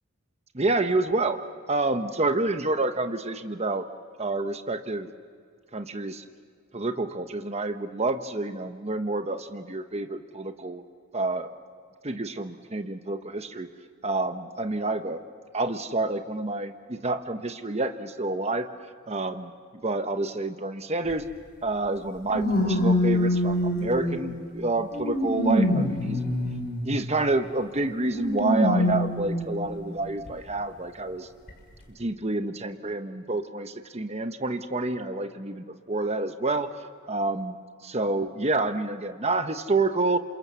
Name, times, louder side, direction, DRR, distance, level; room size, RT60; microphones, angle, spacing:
voice 1, 0.5-1.4 1.7-3.9 4.2-5.1 5.7-6.2 6.7-10.8 11.1-11.5 12.0-13.7 14.0-15.2 15.5-18.7 19.1-19.5 19.8-21.2 21.6-26.2 26.8-31.3 31.9-36.7 37.1-37.6 37.8-40.2, right 2 dB, 30° right, 7 dB, 1.0 m, -28 dB
sound 1, 21.1-21.2 22.3-24.3 24.9-26.9 28.1-29.5 30.3-30.4 31.5-31.6, equal, 45° left, 6.7 m, -25 dB
28.5 x 27.5 x 7.0 m, 2.1 s
head